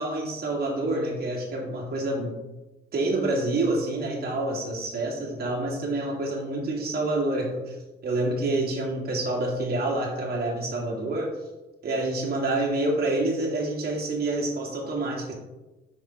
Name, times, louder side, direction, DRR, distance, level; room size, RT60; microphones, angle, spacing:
voice 1, 0.0-2.4 2.9-7.8 8.0-11.3 11.8-15.3, right 2 dB, 50° right, -2 dB, 2.0 m, -27 dB
5.5 x 4.9 x 4.3 m, 1.1 s
cardioid pair, 90°, 20 cm